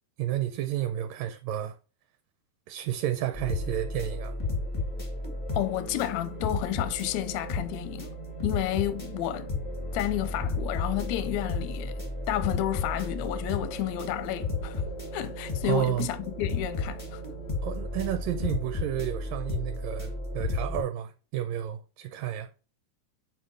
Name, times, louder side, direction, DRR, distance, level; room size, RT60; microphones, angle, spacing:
voice 1, 0.2-1.8 2.7-4.3 15.6-16.1 17.6-22.5, right 12 dB, 80° right, 1.7 m, -31 dB
sound 1, 3.3-20.8, left 2 dB, 35° left, 0.5 m, -33 dB
voice 2, 5.5-8.1 8.4-9.5 9.9-12.0 12.3-14.8 15.1-17.2, left 13 dB, 80° left, 1.8 m, -31 dB
5.6 x 5.0 x 6.3 m
omnidirectional pair, 3.5 m